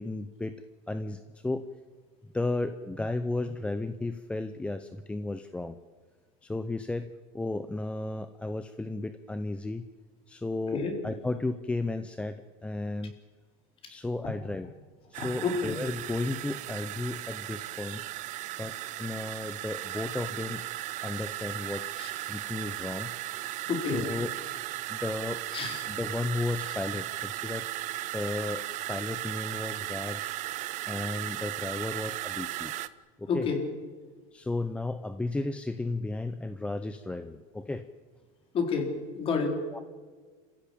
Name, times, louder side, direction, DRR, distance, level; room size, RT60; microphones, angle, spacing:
voice 1, 0.0-1.6 2.3-5.8 6.4-9.8 10.3-13.1 13.9-14.7 15.1-18.0 18.6-20.6 21.0-21.8 22.1-23.1 23.9-24.3 24.9-25.4 25.9-27.7 28.1-30.4 30.9-32.7 33.2-33.5 34.3-37.8 39.7-39.8, left 2 dB, 5° left, 10 dB, 0.7 m, -34 dB
sound 1, 15.1-32.9, right 15 dB, 45° right, 0.9 m, -36 dB
voice 2, 15.2-15.8 22.0-22.1 23.7-24.1 25.5-25.8 26.7-26.8 33.3-33.6 38.5-39.6, left 5 dB, 30° left, 3 dB, 4.6 m, -30 dB
28.5 x 15.5 x 8.6 m, 1.5 s
supercardioid pair, 145°, 18 cm